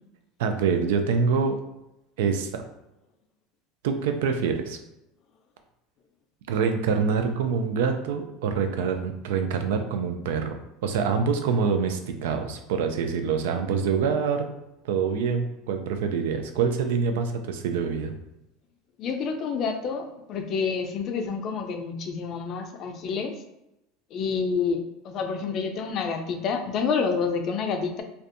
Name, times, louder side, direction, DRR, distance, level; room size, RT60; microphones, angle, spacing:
voice 1, 0.4-1.6 2.2-2.6 3.8-4.8 6.5-14.5 14.8-18.1, right 5 dB, 80° right, 6 dB, 0.3 m, -25 dB
voice 2, 19.0-23.4 24.1-28.0, left 5 dB, 50° left, 6 dB, 0.4 m, -28 dB
2.5 x 2.2 x 2.5 m, 0.88 s
supercardioid pair, 110°, 0 cm